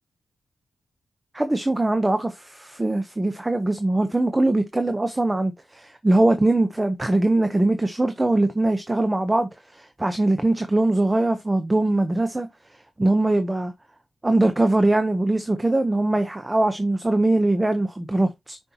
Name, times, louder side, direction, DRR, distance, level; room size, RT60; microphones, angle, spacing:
voice 1, 1.3-12.5 13.0-13.7 14.2-18.6, right 2 dB, 20° right, 0.9 m, -22 dB
6.9 x 5.4 x 3.0 m
cardioid pair, 65°, 0 cm